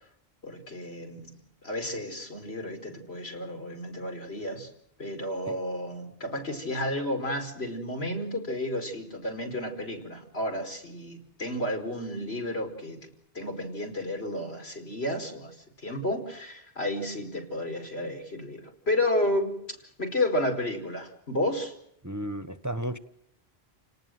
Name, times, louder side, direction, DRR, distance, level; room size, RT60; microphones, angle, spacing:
voice 1, 0.4-4.7 5.0-13.1 13.3-19.6 20.0-21.7, left 1 dB, 80° left, 5.2 m, -32 dB
voice 2, 22.0-23.0, right 1 dB, 20° right, 1.0 m, -33 dB
30.0 x 19.0 x 7.8 m
omnidirectional pair, 1.1 m